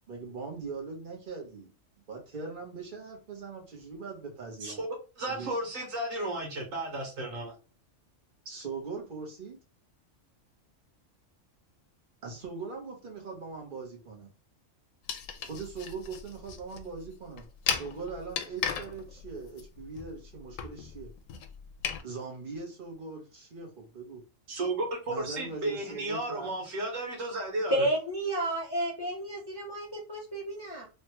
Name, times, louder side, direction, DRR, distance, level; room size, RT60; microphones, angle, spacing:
voice 1, 0.1-1.7 2.1-4.8 5.3-5.5 8.4-9.6 12.2-14.3 15.5-17.5 17.7-21.1 22.0-24.2 25.1-26.5, right 4 dB, 45° right, 1.2 m, -41 dB
voice 2, 5.2-7.5 24.5-27.9, right 2 dB, 90° right, 1.5 m, -33 dB
sound 1, 15.1-22.0, left 7 dB, 85° left, 1.0 m, -37 dB
voice 3, 27.7-30.9, right 1 dB, 30° left, 0.5 m, -31 dB
3.3 x 2.3 x 3.0 m
omnidirectional pair, 1.3 m